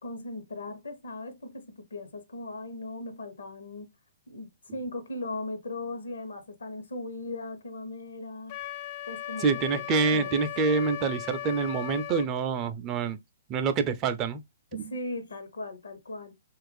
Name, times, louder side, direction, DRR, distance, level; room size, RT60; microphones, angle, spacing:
voice 1, 0.0-3.9 4.3-8.6 9.1-10.4 14.7-16.3, left 2 dB, 75° left, 0.8 m, -38 dB
Wind instrument woodwind instrument, 8.5-12.3, left 11 dB, 40° left, 0.3 m, -37 dB
voice 2, 9.4-13.2 13.5-14.4 14.7-14.9, right 5 dB, 30° right, 0.4 m, -27 dB
3.0 x 2.4 x 3.2 m
figure-of-eight pair, 120°, 0 cm